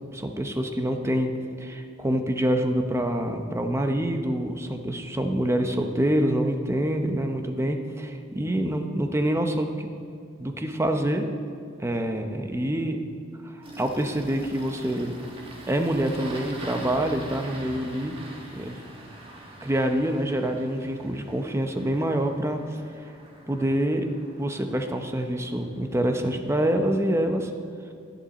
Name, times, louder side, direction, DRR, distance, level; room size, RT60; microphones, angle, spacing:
voice 1, 0.1-1.3 1.6-9.9 10.4-11.3 11.8-13.0 13.4-15.1 15.7-18.2 18.5-18.8 19.6-22.6 23.5-24.1 24.4-27.5, right 1 dB, 15° right, 5 dB, 0.7 m, -26 dB
Engine starting, 13.6-26.1, right 1 dB, 30° right, 1.3 m, -44 dB
11.5 x 10.0 x 4.2 m, 2.4 s
head